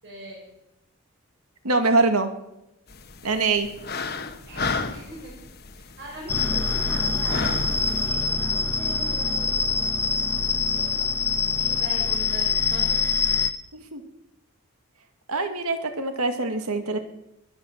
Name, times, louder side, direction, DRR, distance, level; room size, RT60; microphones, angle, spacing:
voice 1, 0.0-0.4 4.5-5.3 5.7-10.1 10.7-11.1 11.6-13.0, equal, 50° right, -3 dB, 6.8 m, -42 dB
voice 2, 1.6-2.3 3.2-3.7 13.7-14.0 15.3-17.0, right 3 dB, 85° right, 7 dB, 2.0 m, -23 dB
sound 1, 2.9-8.1, left 4 dB, 45° left, 1.2 m, -33 dB
sound 2, 6.3-13.5, left 5 dB, 10° left, 0.9 m, -24 dB
22.0 x 9.0 x 7.2 m, 0.89 s
head